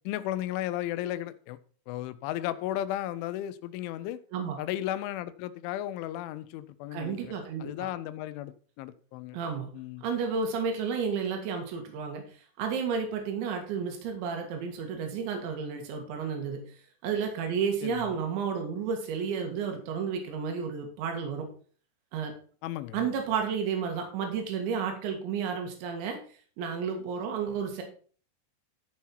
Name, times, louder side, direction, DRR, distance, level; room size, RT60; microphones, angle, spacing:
voice 1, 0.1-1.6 1.9-4.2 4.6-7.3 7.6-9.4 9.7-10.0 17.8-18.2 22.6-23.1, left 13 dB, 85° left, 13 dB, 3.1 m, -34 dB
voice 2, 6.9-7.9 9.3-9.7 10.0-16.8 17.0-21.5 22.1-22.3 22.9-26.2 26.6-27.8, right 6 dB, 75° right, 3 dB, 4.1 m, -32 dB
14.0 x 5.7 x 4.5 m, 0.42 s
omnidirectional pair, 5.4 m